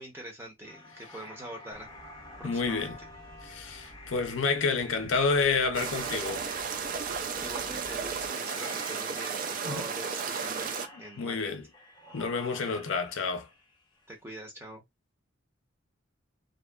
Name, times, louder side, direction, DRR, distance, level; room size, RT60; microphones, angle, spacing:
voice 1, 0.0-1.9 2.4-2.9 7.4-10.7 11.0-11.6 14.1-14.8, right 1 dB, 10° right, 0.7 m, -44 dB
sound 1, 0.6-14.0, left 2 dB, 25° left, 0.6 m, -49 dB
sound 2, 1.7-8.3, right 1 dB, 75° right, 0.8 m, -52 dB
voice 2, 2.4-3.0 3.4-6.5 9.6-9.8 11.2-11.6 12.1-13.5, left 4 dB, 70° left, 0.5 m, -29 dB
sound 3, 5.7-10.9, right 6 dB, 40° right, 0.3 m, -34 dB
2.6 x 2.2 x 2.3 m
head